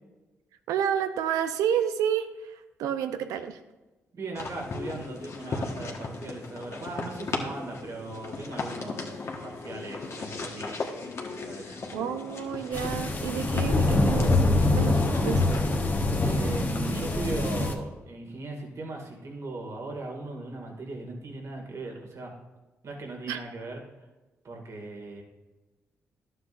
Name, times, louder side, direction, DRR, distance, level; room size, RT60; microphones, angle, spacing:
voice 1, 0.7-3.6 11.6-14.4 14.7-15.0 15.2-15.6 23.3-23.4, right 9 dB, 85° right, 9 dB, 0.6 m, -30 dB
voice 2, 4.1-10.9 11.4-11.7 14.9-15.4 16.2-22.3 22.8-23.8 24.4-25.2, right 2 dB, 60° right, 1 dB, 2.1 m, -38 dB
sound 1, 4.3-17.7, left 3 dB, 55° left, 1.4 m, -37 dB
sound 2, 12.7-17.7, left 2 dB, 35° left, 1.2 m, -24 dB
11.5 x 7.8 x 2.6 m, 1.1 s
supercardioid pair, 55°, 6 cm